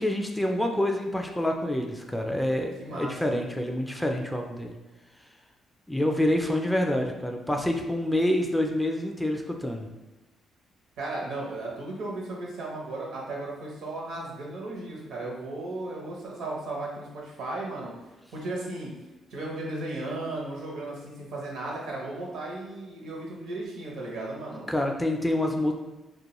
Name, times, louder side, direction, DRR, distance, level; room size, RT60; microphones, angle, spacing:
voice 1, 0.0-4.7 5.9-9.9 24.7-25.7, left 1 dB, 5° left, 2 dB, 0.3 m, -27 dB
voice 2, 2.8-3.4 11.0-17.9 18.3-18.9 19.3-24.7, right 2 dB, 85° right, -3 dB, 0.7 m, -35 dB
2.3 x 2.2 x 2.9 m, 1.1 s
cardioid pair, 90°, 0 cm